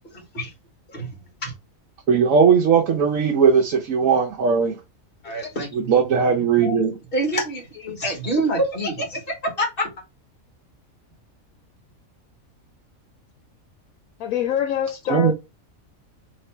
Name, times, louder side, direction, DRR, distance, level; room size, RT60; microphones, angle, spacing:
voice 1, 0.1-0.5 0.9-1.1 1.4-1.5 5.2-5.9 6.5-6.8 7.1-9.9, right 1 dB, 45° left, 1.7 m, -26 dB
voice 2, 2.1-4.7 5.7-6.9 15.1-15.3, right 6 dB, 75° right, 1.2 m, -18 dB
voice 3, 14.2-15.3, left 10 dB, 90° left, 1.1 m, -24 dB
3.3 x 3.1 x 4.3 m
omnidirectional pair, 1.4 m